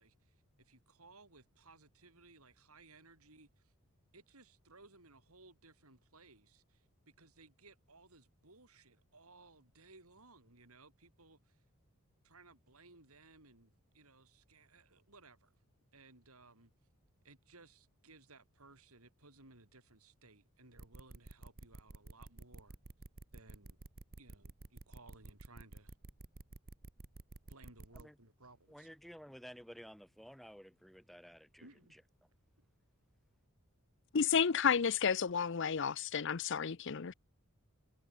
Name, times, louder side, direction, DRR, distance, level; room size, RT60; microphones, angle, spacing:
voice 1, 0.0-3.7 4.1-11.6 12.2-15.5 15.9-16.7 17.2-22.8 23.3-23.8 24.2-26.0 27.5-28.9 31.6-32.0, right 3 dB, 80° right, 7.3 m, -61 dB
sound 1, 20.8-28.0, right 2 dB, 40° right, 0.9 m, -51 dB
voice 2, 28.7-32.0, equal, ahead, 4.0 m, -54 dB
voice 3, 34.1-37.1, left 6 dB, 55° left, 0.6 m, -31 dB
head